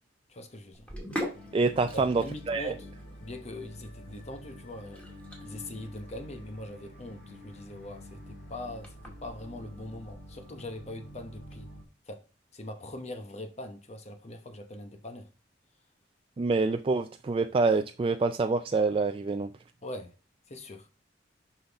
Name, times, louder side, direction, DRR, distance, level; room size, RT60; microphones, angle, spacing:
voice 1, 0.3-0.9 1.9-2.9 3.2-5.0 5.4-11.7 12.1-12.2 12.5-15.3 19.8-20.1 20.5-20.9, left 1 dB, 40° left, 1.0 m, -42 dB
Sink (filling or washing), 0.7-11.6, equal, 5° left, 2.0 m, -44 dB
sound 1, 1.3-11.8, equal, 60° left, 2.1 m, -48 dB
voice 2, 1.5-2.7 16.4-19.5, right 3 dB, 30° right, 0.3 m, -26 dB
7.5 x 5.7 x 3.5 m
head